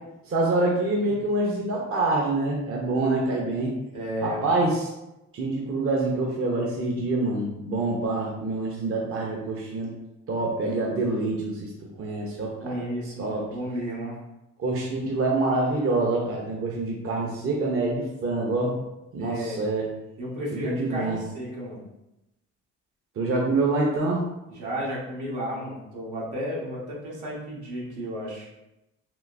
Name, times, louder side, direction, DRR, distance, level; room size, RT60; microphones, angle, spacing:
voice 1, 0.2-3.7 4.2-4.9 5.3-9.9 10.3-12.7 13.2-13.5 14.6-18.8 19.1-19.9 20.5-21.2 23.2-24.3, right 2 dB, 50° right, -2 dB, 0.7 m, -26 dB
voice 2, 3.9-4.4 12.6-14.2 19.2-19.6 20.2-21.8 24.5-28.5, equal, 80° right, -4 dB, 1.2 m, -33 dB
3.6 x 2.5 x 2.5 m, 0.93 s
cardioid pair, 90°, 30 cm